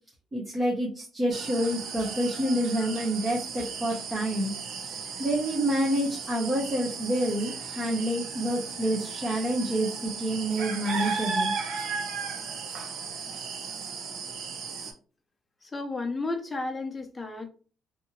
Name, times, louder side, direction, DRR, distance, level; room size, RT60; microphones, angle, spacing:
voice 1, 0.3-4.5 5.2-11.5, right 1 dB, 25° right, -3 dB, 0.7 m, -28 dB
sound 1, 1.3-14.9, right 5 dB, 75° right, 0.7 m, -35 dB
voice 2, 15.6-17.5, left 3 dB, 20° left, 4 dB, 0.6 m, -33 dB
2.7 x 2.6 x 2.6 m, 0.38 s
cardioid pair, 120°, 0 cm